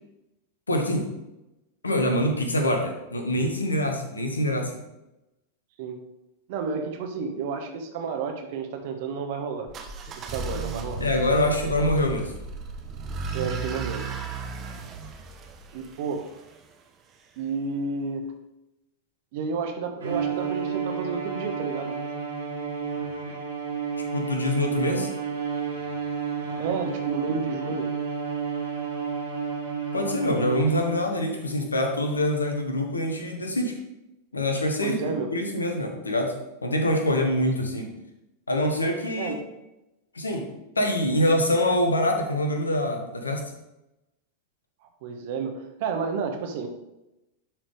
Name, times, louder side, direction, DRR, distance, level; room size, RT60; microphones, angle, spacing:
voice 1, 0.7-1.1 1.8-4.8 11.0-12.3 24.1-25.1 29.9-33.8 34.3-36.3 36.6-38.0 38.5-39.4 40.1-40.5 40.8-43.4, left 1 dB, 75° left, 4 dB, 1.2 m, -25 dB
voice 2, 6.5-9.7 10.2-11.0 13.3-14.1 15.7-16.3 17.4-18.3 19.3-22.0 26.6-27.9 34.8-35.3 39.2-39.4 45.0-46.7, right 5 dB, 50° right, 5 dB, 1.2 m, -31 dB
sound 1, 9.7-16.6, right 3 dB, 30° right, 0.8 m, -35 dB
Bowed string instrument, 20.0-31.2, right 6 dB, 70° right, 2.1 m, -31 dB
10.5 x 4.5 x 3.4 m, 0.93 s
figure-of-eight pair, 90°, 0 cm